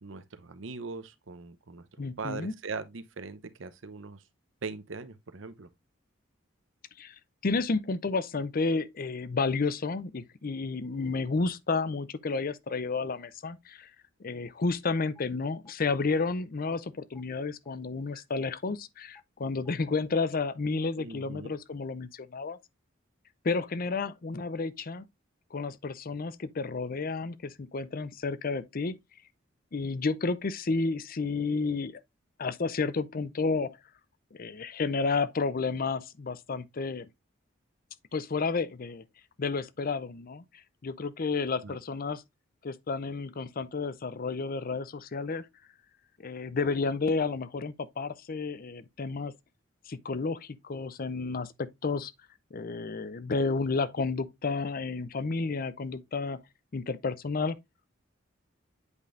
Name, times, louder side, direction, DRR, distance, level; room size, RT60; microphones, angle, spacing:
voice 1, 0.0-1.9 2.2-4.2 4.6-5.7 21.0-21.5 41.6-41.8, right 4 dB, 70° right, 0.8 m, -40 dB
voice 2, 2.0-2.5 7.0-7.1 7.4-13.9 14.2-22.6 23.4-25.1 25.5-29.0 29.7-32.0 32.4-33.8 34.3-37.1 38.1-39.0 39.4-40.4 40.8-42.2 42.6-45.4 46.2-49.3 49.9-52.1 52.5-56.4 56.7-57.6, left 4 dB, 45° left, 0.6 m, -31 dB
sound 1, 15.1-15.2 15.6-15.7 16.1-16.2 16.6-16.7 17.1-17.2 17.6-17.7 18.1-18.2 18.6-18.7 19.1-19.2 19.6-19.7, left 3 dB, 15° left, 0.9 m, -53 dB
8.1 x 5.2 x 2.5 m
head